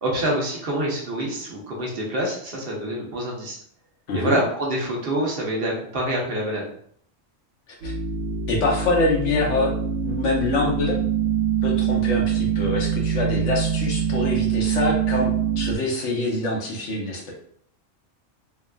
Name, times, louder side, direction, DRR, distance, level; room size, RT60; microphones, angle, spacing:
voice 1, 0.0-3.6 4.1-6.6, right 1 dB, 55° right, -3 dB, 0.9 m, -26 dB
voice 2, 4.1-4.4 7.8-7.9 8.5-9.7 10.0-11.0 11.6-17.3, left 2 dB, 80° left, -2 dB, 1.1 m, -25 dB
sound 1, 7.8-15.7, right 7 dB, 80° right, 0.9 m, -24 dB
3.4 x 2.4 x 2.2 m, 0.62 s
omnidirectional pair, 1.2 m